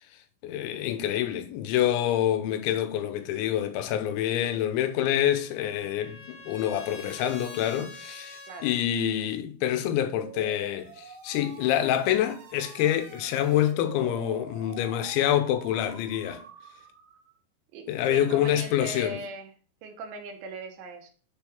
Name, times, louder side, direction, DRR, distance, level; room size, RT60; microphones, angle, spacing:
voice 1, 0.4-16.4 17.9-19.2, left 11 dB, 90° left, 3.1 m, -27 dB
Trumpet, 4.9-8.8, left 2 dB, 65° left, 2.4 m, -46 dB
sound 1, 9.9-17.4, right 7 dB, 70° right, 2.4 m, -46 dB
voice 2, 17.7-19.5 19.8-21.1, right 3 dB, 90° right, 3.4 m, -39 dB
7.5 x 3.8 x 4.4 m
omnidirectional pair, 5.2 m